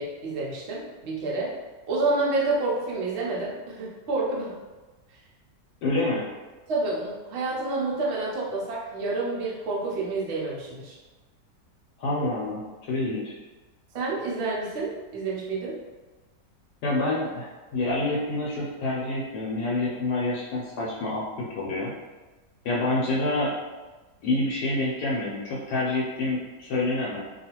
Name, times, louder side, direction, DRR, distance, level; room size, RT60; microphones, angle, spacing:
voice 1, 0.0-1.5 1.9-4.6 6.7-11.0 13.9-15.8, right 3 dB, 60° right, -4 dB, 0.7 m, -29 dB
voice 2, 5.8-6.2 12.0-13.3 16.8-21.9 22.6-23.5 24.2-27.2, left 2 dB, 70° left, -4 dB, 1.1 m, -27 dB
2.8 x 2.4 x 2.8 m, 1.2 s
omnidirectional pair, 1.9 m